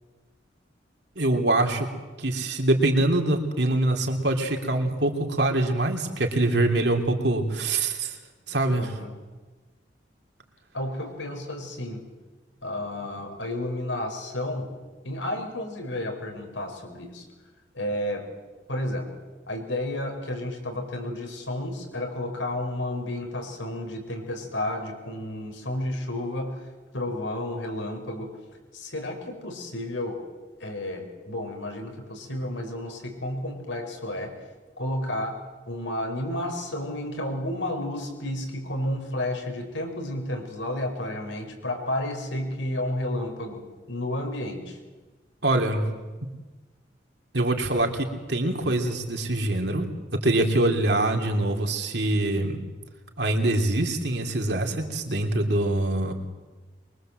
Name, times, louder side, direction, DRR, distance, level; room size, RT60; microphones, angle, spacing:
voice 1, 1.1-1.9 2.2-8.2 8.5-8.9 45.4-46.0 47.3-52.6 53.2-56.1, right 2 dB, 65° right, 3 dB, 3.2 m, -24 dB
voice 2, 8.7-9.1 10.7-12.0 12.6-14.7 15.0-17.2 17.7-18.3 18.7-19.1 19.5-26.7 26.9-28.4 28.7-30.2 30.6-34.3 34.8-44.8, left 1 dB, 90° left, 4 dB, 5.5 m, -31 dB
23.5 x 23.5 x 7.9 m, 1.2 s
head